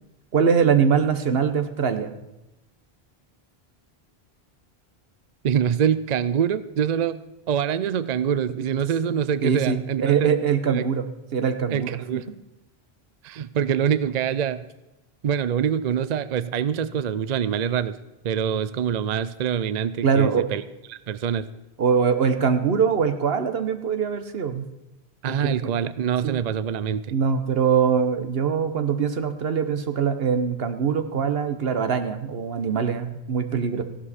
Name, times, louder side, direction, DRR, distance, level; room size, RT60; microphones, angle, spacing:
voice 1, 0.3-2.1 9.4-12.2 20.0-20.4 21.8-24.7 25.3-25.7 26.2-26.5 27.1-33.8, right 6 dB, 70° right, 9 dB, 1.2 m, -23 dB
voice 2, 5.4-7.2 7.5-10.3 10.7-10.9 11.7-12.2 13.2-14.6 15.2-18.0 18.2-20.6 20.9-21.5 25.2-27.0, right 8 dB, 55° right, 15 dB, 0.5 m, -25 dB
15.0 x 11.5 x 4.3 m, 0.96 s
omnidirectional pair, 1.1 m